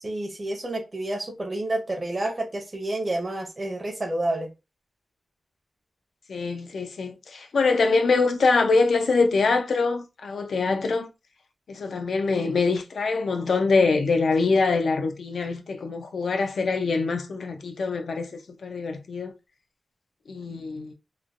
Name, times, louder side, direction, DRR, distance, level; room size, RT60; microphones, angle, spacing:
voice 1, 0.0-4.5, right 1 dB, 30° right, 0.7 m, -29 dB
voice 2, 6.3-11.1 11.7-19.3 20.3-20.9, left 4 dB, 85° left, 0.5 m, -24 dB
3.1 x 2.1 x 2.4 m
wide cardioid pair, 115°, 0 cm